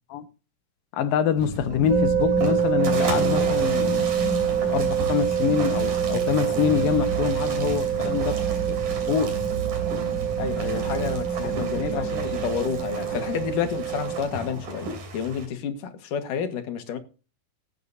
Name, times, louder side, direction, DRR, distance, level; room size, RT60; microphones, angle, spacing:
voice 1, 0.9-4.1 4.7-9.4 10.7-10.9 11.4-12.1 14.5-14.6, left 8 dB, 85° left, 2.8 m, -26 dB
sound 1, 1.4-14.6, right 4 dB, 55° right, 3.3 m, -33 dB
sound 2, 1.4-15.5, right 3 dB, 70° right, 4.4 m, -36 dB
sound 3, 1.9-14.2, right 7 dB, 90° right, 4.8 m, -26 dB
voice 2, 10.4-14.9 15.1-17.0, left 7 dB, 70° left, 2.9 m, -30 dB
18.0 x 9.5 x 2.6 m
omnidirectional pair, 4.0 m